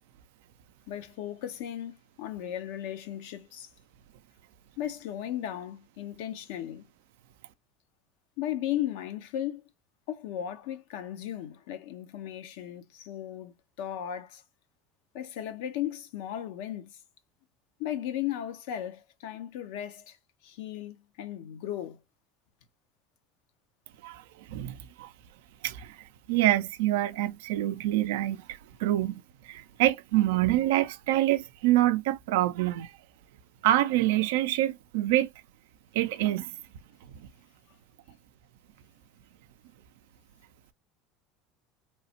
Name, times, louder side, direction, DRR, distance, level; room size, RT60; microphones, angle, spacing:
voice 1, 0.9-3.7 4.8-6.9 8.4-9.6 10.1-14.4 15.1-17.0 17.8-20.2 20.4-22.0, left 11 dB, 75° left, 0.6 m, -36 dB
voice 2, 24.0-25.1 25.6-26.0 26.3-32.9 33.6-35.3 35.9-36.5, right 15 dB, 80° right, 0.4 m, -26 dB
3.1 x 2.0 x 2.7 m
supercardioid pair, 90°, 0 cm